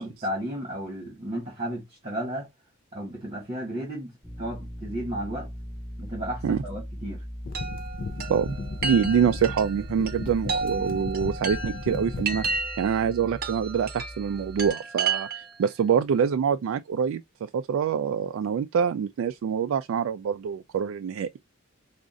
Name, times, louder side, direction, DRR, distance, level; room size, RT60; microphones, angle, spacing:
voice 1, 0.0-2.5 2.9-4.1 4.4-5.5 6.0-7.2, right 1 dB, 30° right, 1.7 m, -33 dB
sound 1, 4.2-14.7, equal, ahead, 2.2 m, -40 dB
sound 2, 7.4-12.6, left 3 dB, 45° left, 0.4 m, -37 dB
Chime, 7.5-15.7, right 4 dB, 50° right, 0.9 m, -33 dB
voice 2, 8.8-21.4, right 7 dB, 75° right, 0.3 m, -26 dB
5.0 x 2.4 x 2.4 m
head